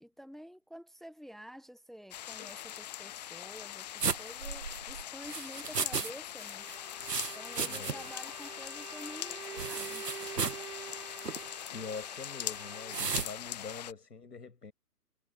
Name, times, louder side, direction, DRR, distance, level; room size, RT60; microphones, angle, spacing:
voice 1, 0.0-6.7 7.3-10.0, equal, ahead, 1.3 m, -49 dB
sound 1, 2.1-13.9, left 12 dB, 25° left, 0.7 m, -42 dB
sound 2, 4.0-6.1 6.4-8.2 8.4-8.5 9.6-10.7 11.2-11.4 12.9-13.3, right 5 dB, 85° right, 1.7 m, -35 dB
Bowed string instrument, 6.6-13.1, right 8 dB, 70° right, 2.9 m, -47 dB
voice 2, 7.6-8.1 11.7-14.7, left 4 dB, 85° left, 7.1 m, -44 dB
figure-of-eight pair, 135°, 47 cm